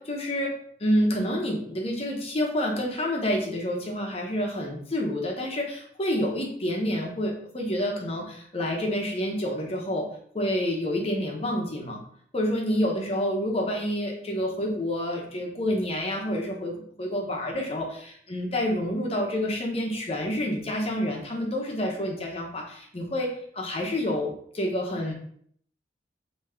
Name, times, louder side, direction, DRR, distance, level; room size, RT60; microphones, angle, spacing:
voice 1, 0.0-10.1 10.3-12.0 12.3-25.1, equal, 35° left, 0 dB, 0.9 m, -28 dB
3.6 x 3.0 x 4.3 m, 0.62 s
head